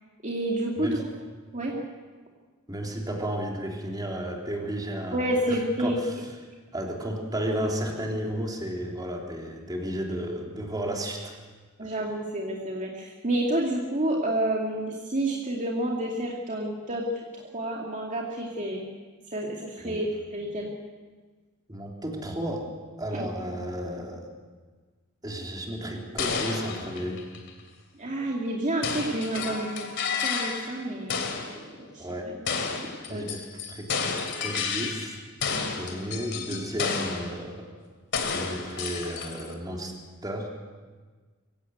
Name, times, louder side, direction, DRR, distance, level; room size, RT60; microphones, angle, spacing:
voice 1, 0.2-0.9 1.5-1.8 5.1-6.0 11.8-18.9 19.3-20.7 23.1-23.2 28.0-29.9 30.2-32.0 33.1-33.3 35.5-35.7, right 1 dB, 35° right, -2 dB, 2.4 m, -29 dB
voice 2, 2.7-6.2 6.7-11.4 11.8-12.0 19.8-20.0 21.7-22.7 23.0-24.3 25.2-27.3 32.0-32.4 33.1-34.2 34.4-35.2 35.7-37.7 38.3-40.5, equal, 20° right, 0 dB, 3.6 m, -33 dB
sound 1, 26.2-27.6 28.8-30.8 31.1-31.6 32.5-35.2 35.4-37.4 38.1-39.5, left 5 dB, 60° left, 2.9 m, -31 dB
24.0 x 16.5 x 8.0 m, 1.4 s
head